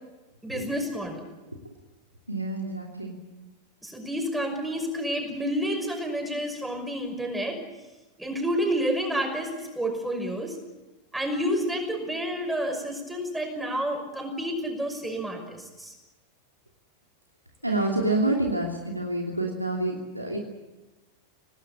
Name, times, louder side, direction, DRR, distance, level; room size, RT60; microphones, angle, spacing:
voice 1, 0.4-1.3 3.8-7.6 8.2-10.6 11.1-15.9, equal, 5° right, 4 dB, 5.9 m, -29 dB
voice 2, 2.3-3.2 17.6-20.4, right 2 dB, 85° right, 0 dB, 2.8 m, -28 dB
26.0 x 18.5 x 8.6 m, 1.1 s
figure-of-eight pair, 90°, 0 cm